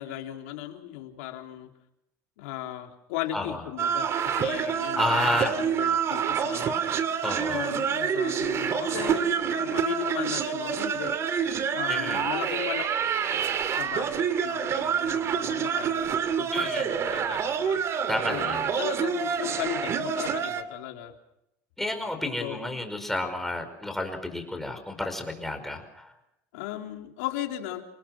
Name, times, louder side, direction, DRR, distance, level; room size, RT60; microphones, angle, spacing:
voice 1, 0.0-1.7 2.4-6.9 7.5-11.2 11.7-12.9 13.8-16.0 16.4-17.8 18.3-21.2 22.4-22.6 25.6-25.7 26.5-27.8, left 13 dB, 85° left, 3 dB, 3.5 m, -36 dB
sound 1, 3.8-20.6, right 7 dB, 40° right, 2.4 m, -27 dB
voice 2, 5.0-5.5 7.2-7.7 11.9-12.2 16.5-16.8 18.1-18.7 21.8-26.1, left 2 dB, 5° left, 5 dB, 5.3 m, -31 dB
28.5 x 19.5 x 6.2 m, 0.81 s
supercardioid pair, 110°, 7 cm